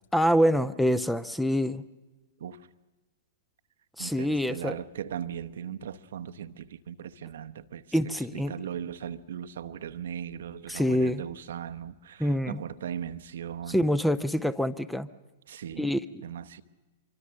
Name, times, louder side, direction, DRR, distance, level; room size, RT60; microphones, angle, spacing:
voice 1, 0.1-1.8 4.0-4.8 7.9-8.5 10.7-11.2 12.2-12.6 13.7-15.1 15.8-16.0, equal, 5° left, 0.6 m, -25 dB
voice 2, 4.0-8.0 8.3-13.9 15.5-15.9 16.2-16.6, right 9 dB, 60° right, 0.9 m, -38 dB
25.0 x 23.5 x 6.4 m
figure-of-eight pair, 105°, 0 cm